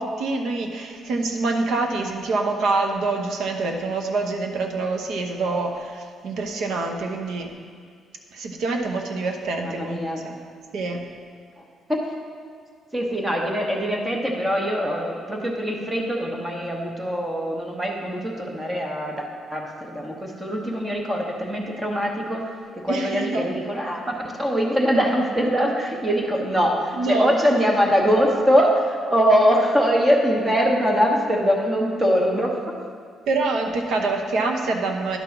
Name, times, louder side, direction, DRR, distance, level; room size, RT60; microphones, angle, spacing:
voice 1, 0.0-7.5 8.3-10.4 10.7-11.1 22.9-23.5 27.0-27.4 33.3-35.2, right 3 dB, 65° right, 3 dB, 0.9 m, -26 dB
voice 2, 9.6-10.2 11.6-11.7 11.9-12.0 12.9-22.4 22.7-32.6, equal, 15° right, 0 dB, 1.0 m, -22 dB
10.5 x 3.8 x 5.9 m, 2.1 s
cardioid pair, 150°, 0 cm